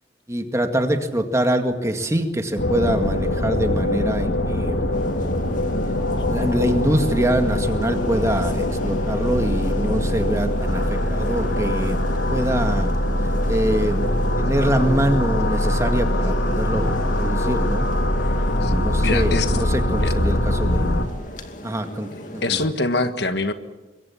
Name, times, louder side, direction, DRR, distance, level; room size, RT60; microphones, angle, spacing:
voice 1, 0.3-4.9 6.3-12.0 12.3-12.9 13.5-14.1 14.4-17.9 18.6-21.0 21.6-22.6, right 1 dB, 15° right, 6 dB, 2.0 m, -24 dB
sound 1, 2.6-21.1, left 1 dB, 90° left, 2.5 m, -22 dB
sound 2, 4.9-22.7, left 1 dB, 45° left, 2.5 m, -37 dB
voice 2, 19.0-19.6 20.0-20.1 22.1-23.5, left 2 dB, 65° left, 9 dB, 1.6 m, -24 dB
25.0 x 22.5 x 7.2 m, 1.1 s
head